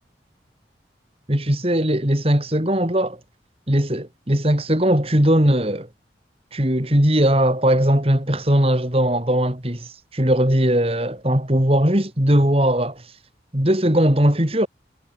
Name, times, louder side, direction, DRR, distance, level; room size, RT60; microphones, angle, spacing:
voice 1, 1.3-3.2 3.7-5.9 6.5-13.0 13.5-14.7, right 1 dB, 35° right, 3.4 m, -19 dB
head